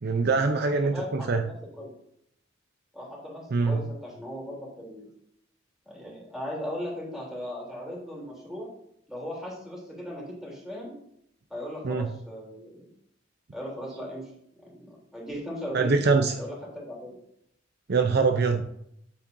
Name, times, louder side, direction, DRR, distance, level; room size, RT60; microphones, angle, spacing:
voice 1, 0.0-1.4 3.5-3.8 11.8-12.1 15.7-16.3 17.9-18.6, right 4 dB, 55° right, 6 dB, 0.6 m, -23 dB
voice 2, 0.6-1.9 2.9-5.1 5.8-8.7 9.1-10.9 11.5-12.9 13.5-14.3 14.7-14.9 15.1-17.1, equal, ahead, -4 dB, 3.2 m, -38 dB
8.6 x 8.5 x 2.6 m, 0.72 s
head